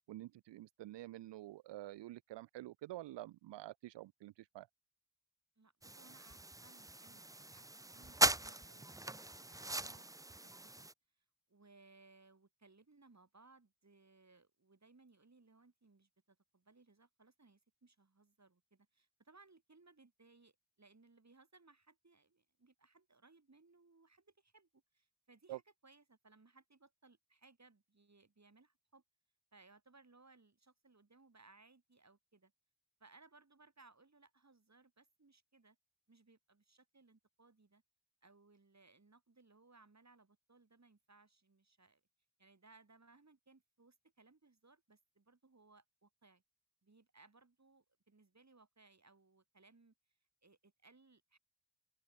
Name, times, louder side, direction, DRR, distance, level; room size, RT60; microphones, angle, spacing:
voice 1, 0.1-4.7 25.5-25.6, right 16 dB, 75° right, 0.5 m, -48 dB
voice 2, 5.6-7.7 7.9-10.1 10.4-10.9 11.2-29.0 29.5-32.5 33.0-35.8 36.1-37.8 38.2-42.0 42.4-46.4 46.8-49.9 50.4-51.4, right 3 dB, 40° right, 5.5 m, -66 dB
sound 1, 5.8-10.9, right 2 dB, 10° right, 0.6 m, -39 dB
open air
supercardioid pair, 40°, 44 cm